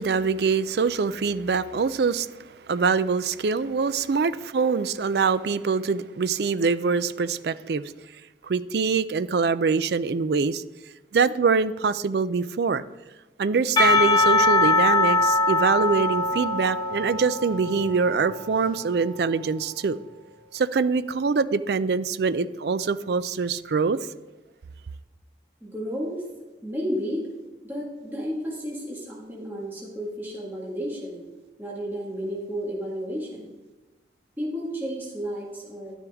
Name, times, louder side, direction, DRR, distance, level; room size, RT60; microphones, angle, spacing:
voice 1, 0.0-7.9 8.4-10.6 11.1-12.8 13.4-20.0 20.5-24.1, right 5 dB, 65° right, 14 dB, 0.4 m, -24 dB
Percussion / Church bell, 13.8-19.0, left 2 dB, 25° left, 1.5 m, -22 dB
voice 2, 25.6-26.2 26.6-27.3 27.6-31.2 31.6-33.5 34.4-36.0, equal, 10° right, -5 dB, 1.9 m, -32 dB
12.0 x 9.9 x 3.6 m, 1.1 s
head